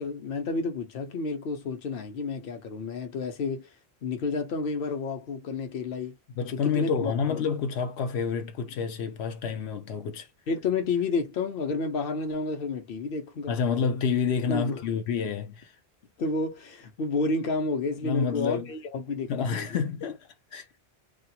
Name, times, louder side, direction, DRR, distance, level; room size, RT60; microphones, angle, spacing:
voice 1, 0.0-3.7 4.0-6.2 6.5-7.4 10.5-13.5 14.5-14.8 16.2-19.8, left 3 dB, 60° left, 0.9 m, -30 dB
voice 2, 6.4-10.3 13.5-15.7 18.0-18.7 19.3-20.8, left 6 dB, 90° left, 0.9 m, -29 dB
2.5 x 2.3 x 2.8 m
omnidirectional pair, 1.1 m